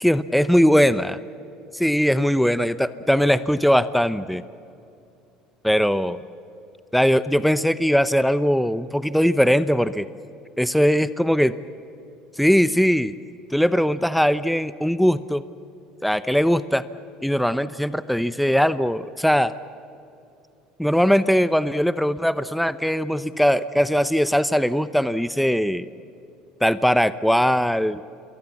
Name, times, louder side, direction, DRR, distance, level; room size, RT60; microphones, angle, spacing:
voice 1, 0.0-1.2 1.7-4.4 5.6-6.2 6.9-10.1 10.6-11.5 12.4-13.1 13.5-15.4 16.0-16.8 17.2-19.5 20.8-25.9 26.6-28.0, equal, ahead, 14 dB, 0.8 m, -20 dB
28.0 x 22.5 x 7.4 m, 2.6 s
supercardioid pair, 85°, 0 cm